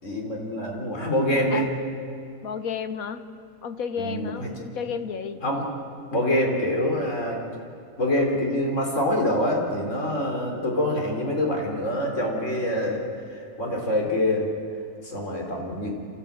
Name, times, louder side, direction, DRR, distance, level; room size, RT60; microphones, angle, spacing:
voice 1, 0.0-1.7 4.0-4.5 5.4-5.6 6.1-7.4 8.0-13.0 13.6-14.5 15.0-15.9, left 1 dB, 60° left, 0 dB, 4.0 m, -25 dB
voice 2, 2.4-3.2 3.6-5.4, left 6 dB, 90° left, 10 dB, 1.5 m, -32 dB
27.0 x 14.5 x 8.7 m, 2.4 s
omnidirectional pair, 1.4 m